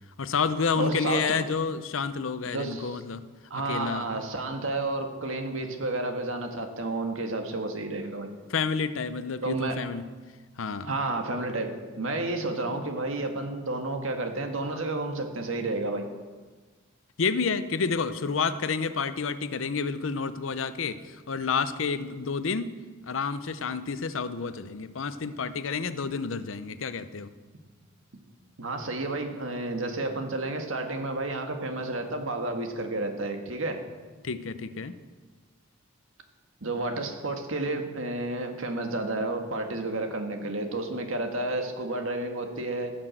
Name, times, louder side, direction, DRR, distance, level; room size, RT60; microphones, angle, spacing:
voice 1, 0.2-3.2 3.6-4.1 8.5-10.1 10.6-11.0 17.2-22.8 23.0-27.3 34.2-34.9, left 5 dB, 70° left, 13 dB, 0.7 m, -29 dB
voice 2, 0.7-1.4 2.5-3.0 3.5-8.3 9.4-9.8 10.8-16.0 28.6-33.8 36.6-42.9, right 2 dB, 75° right, 5 dB, 1.7 m, -31 dB
16.5 x 6.1 x 7.8 m, 1.4 s
head